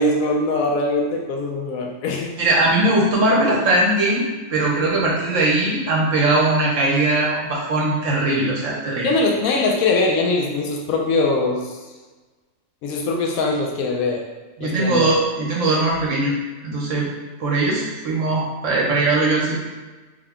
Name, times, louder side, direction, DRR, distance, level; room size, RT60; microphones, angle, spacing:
voice 1, 0.0-2.3 9.0-11.9 12.8-14.3 14.6-15.1, left 2 dB, 85° left, 0 dB, 1.0 m, -22 dB
voice 2, 2.4-9.1 14.6-16.3 16.6-17.1 17.4-19.6, right 2 dB, 65° right, -3 dB, 1.1 m, -20 dB
3.5 x 2.2 x 3.6 m, 1.2 s
omnidirectional pair, 1.4 m